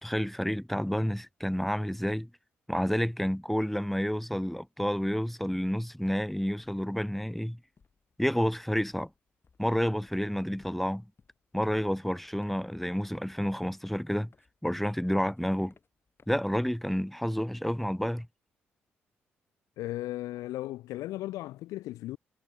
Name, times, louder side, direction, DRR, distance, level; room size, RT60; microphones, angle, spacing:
voice 1, 0.0-2.3 2.7-7.6 8.2-9.1 9.6-11.0 11.5-14.3 14.6-15.7 16.3-18.3, equal, 5° left, 0.7 m, -30 dB
sound 1, 5.5-5.6 5.9-17.3, left 5 dB, 40° left, 3.9 m, -65 dB
voice 2, 19.8-22.2, left 16 dB, 70° left, 0.8 m, -36 dB
hypercardioid pair, 40°, 6 cm